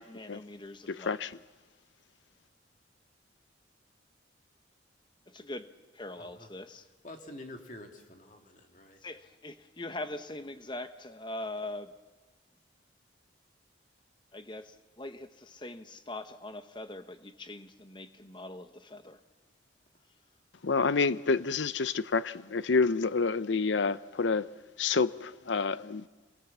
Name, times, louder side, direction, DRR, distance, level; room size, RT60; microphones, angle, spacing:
voice 1, 0.1-1.2 5.3-6.9 9.0-11.9 14.3-19.2, left 2 dB, 25° left, 1.1 m, -42 dB
voice 2, 0.9-1.4 20.6-24.5 24.8-26.1, left 4 dB, 75° left, 0.7 m, -28 dB
voice 3, 6.1-6.5 7.0-9.0, left 1 dB, 40° left, 2.5 m, -47 dB
28.0 x 21.5 x 7.3 m
head